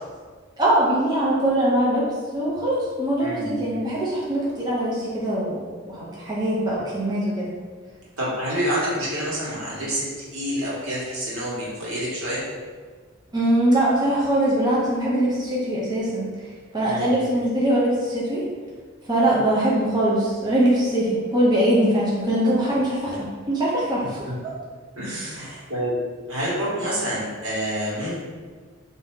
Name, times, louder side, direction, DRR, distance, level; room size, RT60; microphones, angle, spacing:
voice 1, 0.6-2.1 2.3-7.5 13.3-16.3 16.7-18.4 19.1-24.2 25.4-25.6, right 1 dB, 20° right, -6 dB, 0.6 m, -22 dB
voice 2, 3.2-3.7 8.2-10.1 10.3-12.4 16.8-17.1 24.0-24.3 25.0-26.0 26.3-28.2, equal, 85° right, -7 dB, 1.3 m, -28 dB
3.4 x 2.6 x 3.7 m, 1.5 s
head